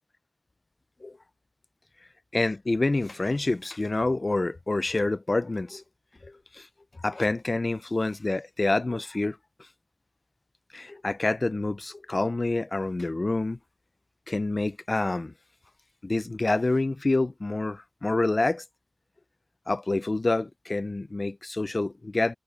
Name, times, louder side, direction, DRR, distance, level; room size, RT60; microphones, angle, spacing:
voice 1, 2.3-5.8 6.2-6.7 7.0-9.4 10.7-13.6 14.3-15.3 16.0-18.6 19.7-22.3, left 2 dB, 45° left, 0.5 m, -27 dB
wide cardioid pair, 75°, 0 cm